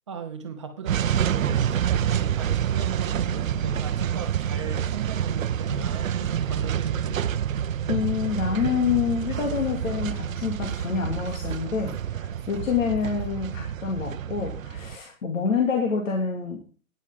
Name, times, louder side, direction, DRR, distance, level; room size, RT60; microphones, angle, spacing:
voice 1, 0.1-7.3, right 5 dB, 20° right, 7 dB, 0.8 m, -37 dB
sound 1, 0.9-15.0, right 9 dB, 70° right, 0.7 m, -28 dB
voice 2, 7.9-16.6, left 6 dB, 65° left, 1 dB, 2.5 m, -27 dB
12.5 x 10.0 x 3.7 m, 0.38 s
hypercardioid pair, 175°, 42 cm